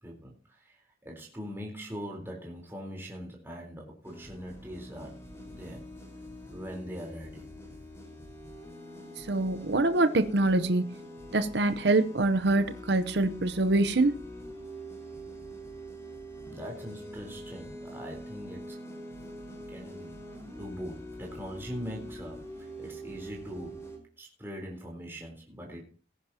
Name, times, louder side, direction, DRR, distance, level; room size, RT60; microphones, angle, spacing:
voice 1, 0.0-5.2 5.5-5.8 6.5-7.5 16.4-18.8 19.7-23.9 24.2-25.9, equal, 10° right, 3.8 m, -42 dB
sound 1, 4.0-24.0, equal, 15° left, 4.7 m, -44 dB
voice 2, 9.2-10.9 11.3-14.2, right 2 dB, 60° right, 0.8 m, -25 dB
20.0 x 10.5 x 2.8 m
head